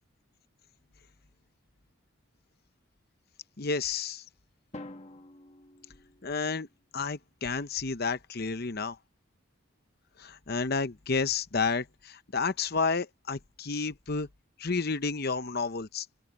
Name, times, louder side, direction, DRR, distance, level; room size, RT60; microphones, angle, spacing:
voice 1, 3.6-4.2 6.2-6.7 6.9-9.0 10.2-14.3 14.6-16.1, left 4 dB, 45° left, 0.9 m, -31 dB
Drum, 4.7-6.8, left 2 dB, 30° left, 1.4 m, -48 dB
open air
head